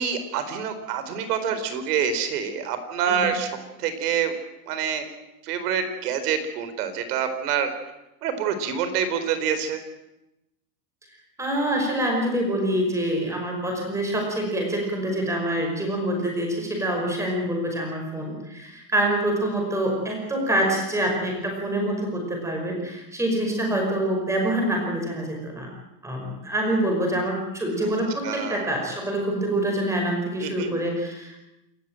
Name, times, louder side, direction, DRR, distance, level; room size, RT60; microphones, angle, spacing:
voice 1, 0.0-4.3 4.7-5.1 5.4-7.7 8.2-9.8 27.8-27.9 28.2-28.7 30.4-30.8, right 7 dB, 70° right, 10 dB, 4.2 m, -26 dB
voice 2, 11.4-25.7 26.0-31.4, right 1 dB, 5° right, 1 dB, 5.4 m, -26 dB
28.0 x 14.0 x 9.1 m, 0.92 s
supercardioid pair, 175°, 48 cm